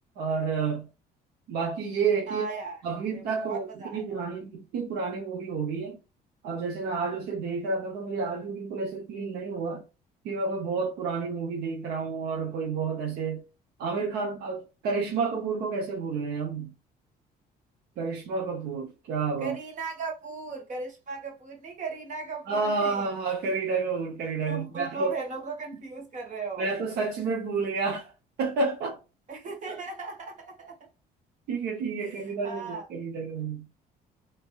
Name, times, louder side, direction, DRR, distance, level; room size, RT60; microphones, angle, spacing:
voice 1, 0.2-0.8 1.5-2.5 2.8-6.0 6.4-9.8 10.2-13.4 13.8-16.7 18.0-19.6 22.5-25.2 26.6-28.1 28.4-29.0 29.7-29.8 31.5-33.6, right 4 dB, 70° right, 0.8 m, -30 dB
voice 2, 2.3-2.8 3.1-4.2 19.4-23.1 24.5-26.7 29.3-30.9 32.0-32.8, right 4 dB, 45° right, 1.5 m, -37 dB
3.6 x 2.9 x 2.3 m
cardioid pair, 110°, 17 cm